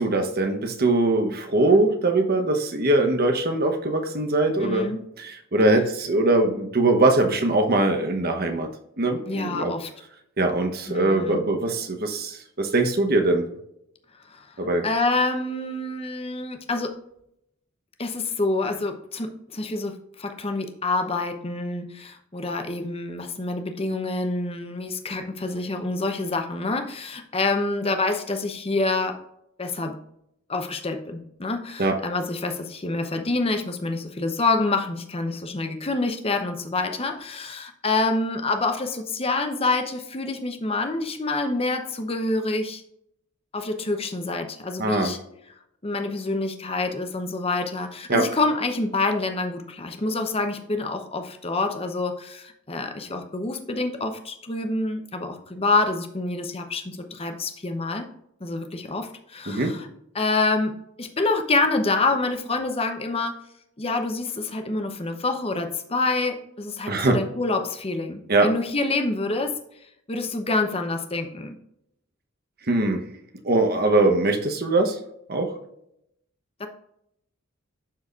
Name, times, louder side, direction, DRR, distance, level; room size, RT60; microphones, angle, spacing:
voice 1, 0.0-4.9 5.2-8.7 9.0-9.7 10.4-13.5 14.6-14.9 31.8-32.0 44.8-45.1 48.1-48.2 59.5-59.8 66.9-67.2 68.3-68.5 72.7-73.0 73.4-75.0 75.3-75.5, right 2 dB, 45° right, 5 dB, 1.0 m, -22 dB
voice 2, 4.6-5.0 9.3-9.9 10.9-11.4 14.3-14.5 14.8-16.9 18.0-29.1 29.6-29.9 30.5-42.8 43.5-45.2 45.8-58.1 58.4-59.9 60.1-60.7 61.0-63.3 63.8-69.5 70.1-71.6 76.6-76.7, left 3 dB, 30° left, 6 dB, 0.8 m, -27 dB
12.0 x 4.1 x 2.4 m, 0.77 s
head